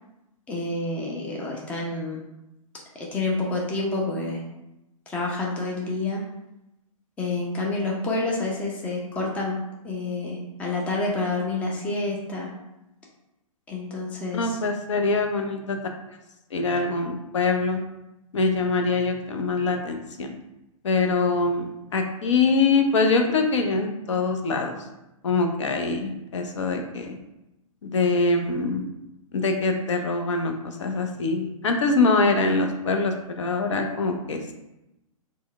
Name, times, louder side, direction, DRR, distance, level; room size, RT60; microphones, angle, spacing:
voice 1, 0.5-2.2 2.9-4.4 5.1-6.2 7.2-9.6 9.8-12.5 13.7-14.6, left 2 dB, 5° left, -2 dB, 0.4 m, -28 dB
voice 2, 14.3-15.8 16.5-17.8 18.3-20.3 20.8-24.8 25.2-27.2 27.8-28.9 29.3-34.5, left 3 dB, 55° left, 4 dB, 0.5 m, -24 dB
4.4 x 2.0 x 3.4 m, 0.92 s
figure-of-eight pair, 120°, 18 cm